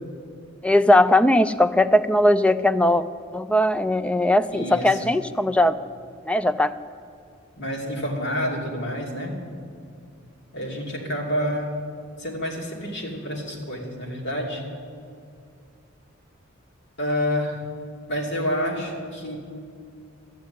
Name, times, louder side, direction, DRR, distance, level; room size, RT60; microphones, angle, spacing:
voice 1, 0.6-3.0 3.3-5.8 6.2-6.7, left 1 dB, 5° left, 13 dB, 0.4 m, -19 dB
voice 2, 4.5-5.1 7.6-9.4 10.5-11.7 12.2-14.6 17.0-17.6 18.1-19.4, equal, 60° left, 0 dB, 2.7 m, -28 dB
12.5 x 9.4 x 9.7 m, 2.4 s
head